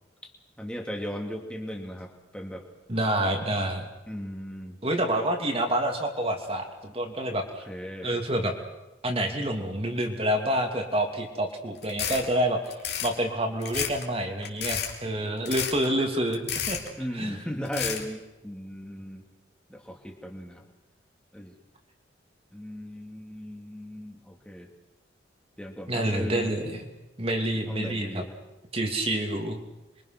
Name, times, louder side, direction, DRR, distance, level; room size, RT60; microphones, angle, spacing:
voice 1, 0.6-2.6 4.1-4.8 7.7-8.2 17.0-19.2 19.7-20.6 21.3-21.5 22.5-24.7 25.6-26.5 27.7-28.3, equal, 5° left, 2 dB, 2.6 m, -37 dB
voice 2, 2.9-3.9 4.8-7.6 8.0-8.5 9.0-16.8 17.1-17.4 25.9-26.9 27.2-28.2 28.7-29.6, right 1 dB, 30° right, 3 dB, 2.7 m, -28 dB
sound 1, 11.8-12.3 12.7-13.1 13.6-14.0 14.4-14.9 15.5-15.9 16.3-16.9 17.7-18.0, left 9 dB, 55° left, 3.3 m, -30 dB
27.5 x 23.5 x 6.1 m, 1.0 s
head